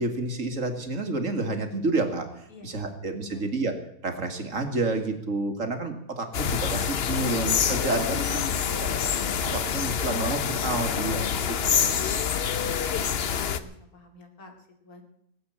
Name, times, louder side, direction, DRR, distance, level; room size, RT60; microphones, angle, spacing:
voice 1, 0.0-3.8 4.0-8.4 8.8-8.9 9.5-11.3 11.8-12.0, right 3 dB, 60° right, 5 dB, 2.3 m, -29 dB
voice 2, 2.5-3.4 8.9-9.9 13.1-15.0, left 2 dB, 80° left, 4 dB, 2.9 m, -49 dB
sound 1, 6.3-13.6, left 7 dB, 50° left, 0.9 m, -26 dB
19.0 x 7.9 x 8.8 m, 0.74 s
omnidirectional pair, 1.5 m